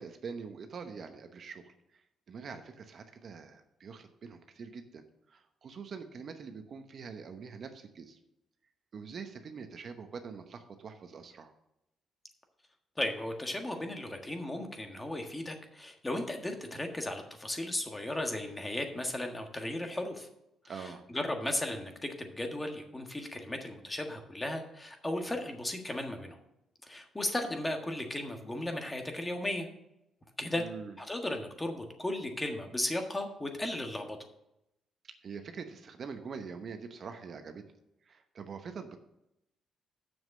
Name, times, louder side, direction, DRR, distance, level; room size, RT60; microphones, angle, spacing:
voice 1, 0.0-2.0 2.3-5.0 5.3-8.2 8.9-11.5 20.7-21.0 30.5-30.9 35.0-37.6 38.0-39.0, right 5 dB, 55° right, 7 dB, 0.9 m, -44 dB
voice 2, 13.0-20.3 20.6-26.4 26.8-29.7 30.4-30.6 31.0-34.2, left 1 dB, 15° left, 4 dB, 1.5 m, -35 dB
7.3 x 6.2 x 6.4 m, 0.83 s
cardioid pair, 90°, 0 cm